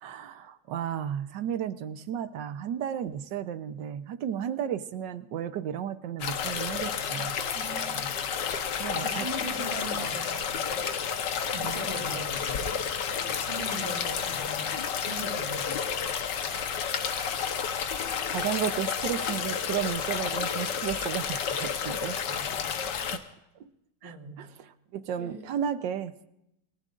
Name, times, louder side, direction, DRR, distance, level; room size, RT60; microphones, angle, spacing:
voice 1, 0.0-8.0 8.8-9.3 16.5-16.8 18.1-22.2 23.1-23.2 23.6-23.7 24.0-26.3, right 9 dB, 80° right, 12 dB, 1.5 m, -34 dB
sound 1, 6.2-23.2, left 7 dB, 75° left, 1.7 m, -31 dB
voice 2, 7.7-8.1 8.9-10.9 11.4-12.7 13.4-15.7 22.2-22.8 24.0-24.4 25.2-25.4, right 2 dB, 15° right, 0 dB, 3.1 m, -40 dB
29.5 x 19.5 x 2.5 m, 0.82 s
omnidirectional pair, 1.9 m